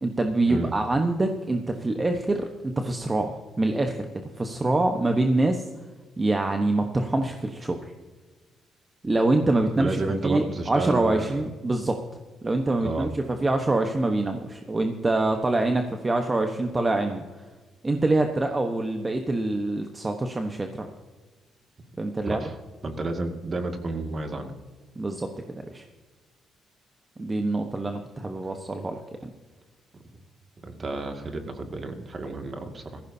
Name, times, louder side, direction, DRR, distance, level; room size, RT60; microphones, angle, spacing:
voice 1, 0.0-5.6 6.2-7.9 9.0-12.0 12.4-17.4 17.8-20.9 22.0-22.4 25.0-25.3 25.6-25.8 27.2-29.3, right 2 dB, 25° right, 4 dB, 1.2 m, -25 dB
voice 2, 9.8-11.4 12.8-13.1 22.3-22.5 22.8-24.5 30.6-33.0, right 2 dB, 40° right, 5 dB, 2.2 m, -31 dB
17.5 x 15.0 x 2.8 m, 1.3 s
cardioid pair, 90°, 0 cm